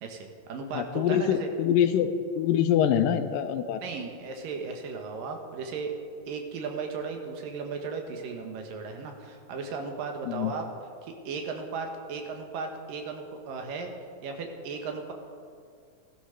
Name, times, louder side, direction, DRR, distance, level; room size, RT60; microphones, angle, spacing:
voice 1, 0.0-1.5 3.8-5.9 6.3-10.7 11.0-13.9 14.2-15.1, right 4 dB, 75° right, 4 dB, 3.1 m, -36 dB
voice 2, 0.7-3.8 10.3-10.5, left 9 dB, 80° left, 9 dB, 2.5 m, -25 dB
16.0 x 12.5 x 6.6 m, 2.2 s
omnidirectional pair, 3.9 m